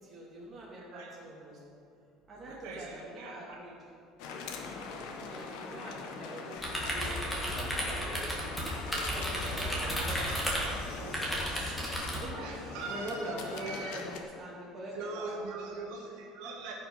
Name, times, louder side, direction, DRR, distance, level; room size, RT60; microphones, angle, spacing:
voice 1, 0.0-1.6 2.3-3.8 5.2-7.2 7.8-11.9 12.2-15.7 16.4-16.5, right 1 dB, 15° right, -6 dB, 2.7 m, -44 dB
voice 2, 0.7-1.1 2.5-3.6 12.3-14.0 14.9-16.7, right 4 dB, 65° right, -1 dB, 1.4 m, -42 dB
sound 1, 4.2-14.2, left 4 dB, 65° left, 1.1 m, -42 dB
sound 2, 6.6-12.2, equal, ahead, 1.9 m, -34 dB
15.0 x 5.8 x 5.7 m, 2.5 s
cardioid pair, 175°, 0 cm